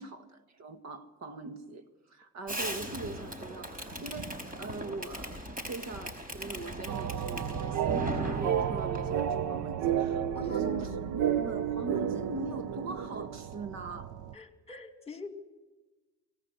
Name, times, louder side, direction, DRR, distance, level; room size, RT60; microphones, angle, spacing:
voice 1, 0.0-10.9 11.3-14.1, right 3 dB, 60° right, 1.8 m, -42 dB
Fireworks, 2.5-9.3, equal, 30° right, 4.7 m, -38 dB
sound 1, 6.9-14.3, right 9 dB, 80° right, 1.0 m, -32 dB
voice 2, 10.3-11.1 14.3-15.3, left 4 dB, 20° left, 2.4 m, -44 dB
24.5 x 18.0 x 8.0 m
cardioid pair, 90°, 30 cm